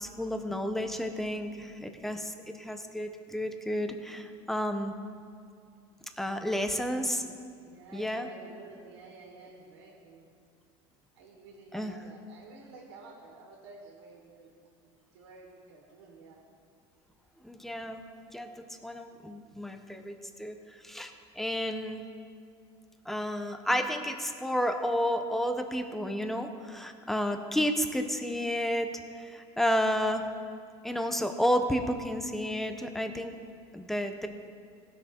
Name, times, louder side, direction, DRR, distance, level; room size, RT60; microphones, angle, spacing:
voice 1, 0.0-4.9 6.2-7.2 7.9-8.3 11.7-11.9 17.4-18.0 18.3-20.6 20.8-22.0 23.1-28.9 29.2-30.2 30.8-33.3 33.7-34.3, equal, ahead, 6 dB, 0.8 m, -31 dB
voice 2, 6.6-7.3 7.6-10.3 11.1-14.5 14.8-16.4 19.5-19.6, right 3 dB, 85° right, -2 dB, 2.2 m, -52 dB
16.0 x 6.3 x 4.4 m, 2.2 s
supercardioid pair, 100°, 14 cm